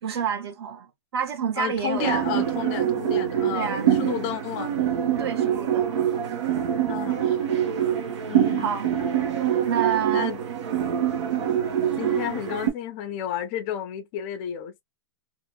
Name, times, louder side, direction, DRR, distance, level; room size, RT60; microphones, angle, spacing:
voice 1, 0.0-2.2 3.5-3.9 5.2-5.9 8.6-8.9 9.6-10.3, right 8 dB, 65° right, 1.0 m, -28 dB
voice 2, 1.6-4.8 6.9-7.4 8.3-8.7 10.1-10.4 12.0-14.8, left 9 dB, 25° left, 0.5 m, -32 dB
sound 1, 2.0-12.7, right 9 dB, 85° right, 1.1 m, -25 dB
2.8 x 2.4 x 2.2 m
supercardioid pair, 180°, 14 cm